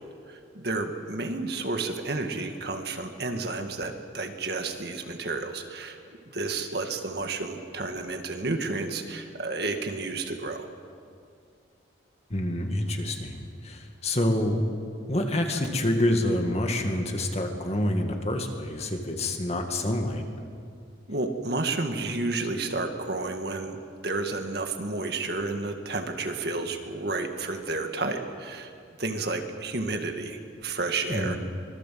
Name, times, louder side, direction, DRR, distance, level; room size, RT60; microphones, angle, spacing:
voice 1, 0.3-6.0 6.3-10.7 21.1-23.8 24.0-28.7 29.0-31.4, right 3 dB, 55° right, 5 dB, 2.0 m, -31 dB
voice 2, 12.3-14.7 15.1-20.2 31.1-31.4, left 1 dB, 35° left, 4 dB, 2.2 m, -27 dB
25.0 x 21.5 x 7.7 m, 2.3 s
head